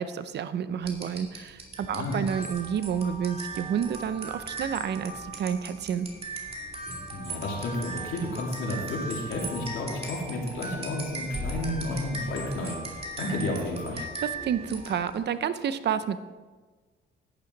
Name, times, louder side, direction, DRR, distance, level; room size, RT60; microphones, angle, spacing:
voice 1, 0.0-6.1 14.0-16.2, right 8 dB, 60° right, 13 dB, 0.7 m, -30 dB
sound 1, 0.8-15.3, right 2 dB, 30° right, 2.4 m, -38 dB
voice 2, 7.1-14.0, left 2 dB, 80° left, -2 dB, 2.9 m, -32 dB
10.5 x 9.5 x 4.0 m, 1.3 s
cardioid pair, 90°, 20 cm